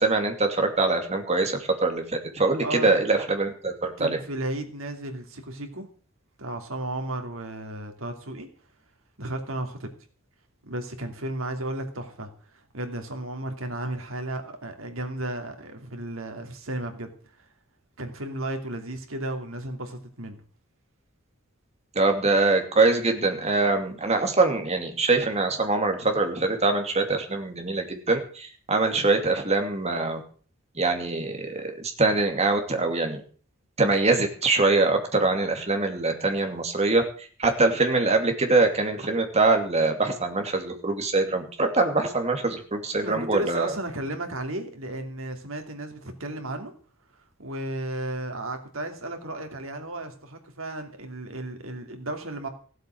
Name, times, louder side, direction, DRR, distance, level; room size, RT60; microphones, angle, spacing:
voice 1, 0.0-2.0 2.3-4.2 22.0-30.2 30.8-33.2 33.8-37.0 37.4-43.7, right 3 dB, 30° right, 2.6 m, -23 dB
voice 2, 2.6-3.0 4.0-5.9 6.4-8.5 9.2-9.9 10.6-12.3 12.7-17.1 17.4-17.5 18.0-20.4 43.0-46.7 47.4-52.5, right 1 dB, 75° right, 2.8 m, -34 dB
16.0 x 8.0 x 7.8 m
head